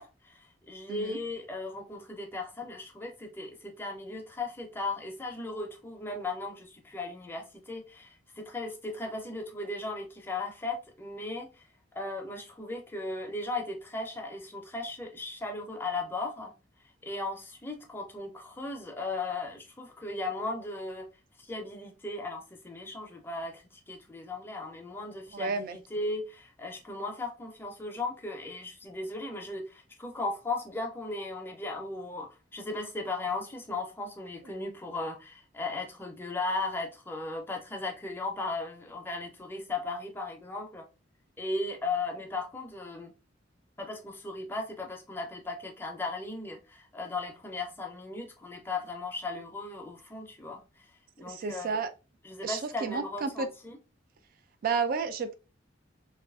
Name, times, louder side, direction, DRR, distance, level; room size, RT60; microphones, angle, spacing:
voice 1, 0.0-11.6 11.9-16.5 17.0-21.1 21.4-40.8 41.4-43.1 43.8-50.6 51.2-51.8 52.2-53.8, left 3 dB, 10° left, 0.4 m, -37 dB
voice 2, 25.3-25.8 51.3-51.9 52.4-53.5 54.6-55.3, right 5 dB, 50° right, 0.3 m, -31 dB
2.6 x 2.3 x 2.3 m
head